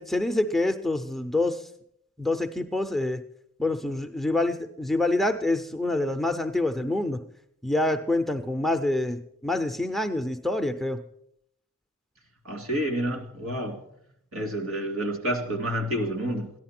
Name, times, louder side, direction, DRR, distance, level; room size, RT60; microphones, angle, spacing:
voice 1, 0.0-1.7 2.2-3.2 3.6-7.2 7.6-11.0, left 2 dB, ahead, 5 dB, 0.5 m, -26 dB
voice 2, 12.4-13.8 14.3-16.5, right 1 dB, 75° right, 6 dB, 2.5 m, -29 dB
14.0 x 10.5 x 5.9 m, 0.72 s
head